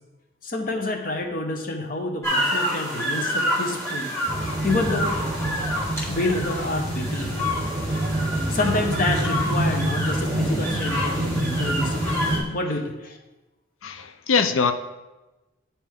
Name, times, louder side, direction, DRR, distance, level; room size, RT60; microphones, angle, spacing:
voice 1, 0.4-4.1 4.4-5.1 6.0-7.5 8.5-12.2 12.5-13.2, left 2 dB, 45° left, 4 dB, 0.8 m, -28 dB
sound 1, 2.2-12.4, equal, 15° left, 1.5 m, -28 dB
sound 2, 4.3-12.4, right 1 dB, 30° right, 0.7 m, -27 dB
voice 2, 13.8-14.7, left 5 dB, 80° left, 10 dB, 0.5 m, -22 dB
9.4 x 4.3 x 3.5 m, 1.1 s
head